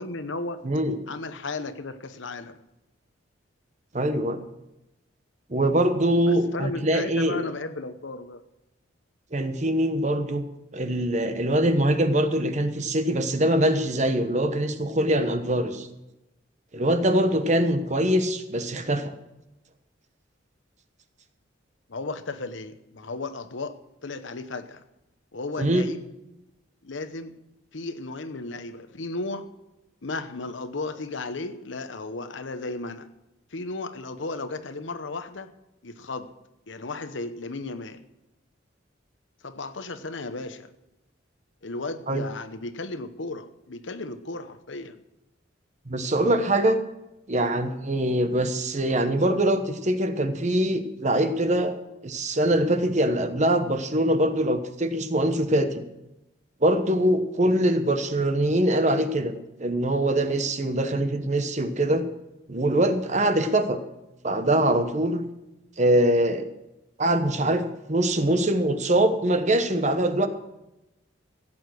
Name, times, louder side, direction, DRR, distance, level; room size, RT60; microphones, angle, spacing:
voice 1, 0.0-0.6 1.1-2.6 6.3-8.4 21.9-23.8 24.0-24.8 25.3-26.0 26.8-27.3 27.7-29.5 30.0-33.1 33.5-35.5 35.8-36.3 36.7-38.0 39.4-40.7 41.6-45.0, left 3 dB, 75° left, 10 dB, 1.0 m, -34 dB
voice 2, 0.6-1.0 3.9-4.4 5.5-7.4 9.3-10.4 10.7-15.9 16.7-19.1 25.6-25.9 42.1-42.2 45.9-46.8 47.3-51.8 52.0-55.8 56.6-62.1 62.5-63.8 64.2-65.2 65.8-66.5 67.0-70.3, right 1 dB, 40° right, 9 dB, 1.1 m, -23 dB
16.0 x 8.8 x 6.3 m, 0.94 s
head